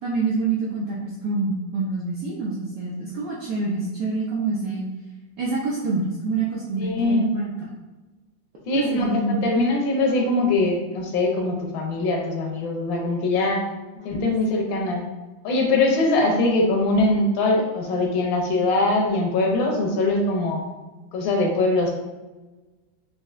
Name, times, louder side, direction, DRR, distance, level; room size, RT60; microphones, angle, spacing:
voice 1, 0.0-4.9 5.4-7.5 8.7-9.4 14.0-14.1, right 3 dB, 75° right, -5 dB, 0.8 m, -26 dB
voice 2, 6.8-7.4 8.7-13.6 14.0-15.1 15.4-20.6 21.1-22.0, left 2 dB, 80° left, 1 dB, 1.3 m, -22 dB
4.1 x 2.6 x 2.4 m, 1.2 s
omnidirectional pair, 2.1 m